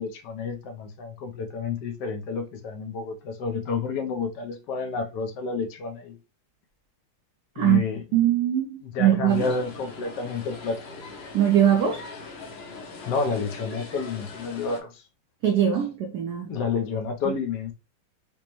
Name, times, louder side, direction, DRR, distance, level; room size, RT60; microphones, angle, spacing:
voice 1, 0.0-6.2 7.6-8.0 8.8-10.8 13.1-15.0 16.5-17.7, left 5 dB, 70° left, 1.2 m, -30 dB
voice 2, 8.1-9.5 11.3-12.0 15.4-16.5 17.3-17.4, right 10 dB, 70° right, 1.0 m, -21 dB
sound 1, 9.3-14.8, left 3 dB, 85° left, 0.5 m, -41 dB
5.2 x 2.1 x 3.0 m
omnidirectional pair, 2.1 m